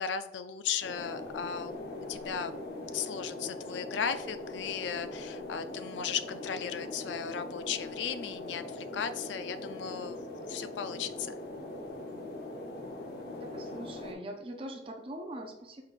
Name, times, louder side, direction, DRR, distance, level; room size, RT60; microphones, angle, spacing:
voice 1, 0.0-2.6 2.9-11.3, left 7 dB, 80° left, 11 dB, 0.3 m, -36 dB
sound 1, 0.8-14.1, left 2 dB, 60° left, 0.7 m, -41 dB
voice 2, 13.4-15.8, right 1 dB, 30° right, 2 dB, 0.5 m, -42 dB
5.0 x 3.8 x 2.4 m, 0.99 s
head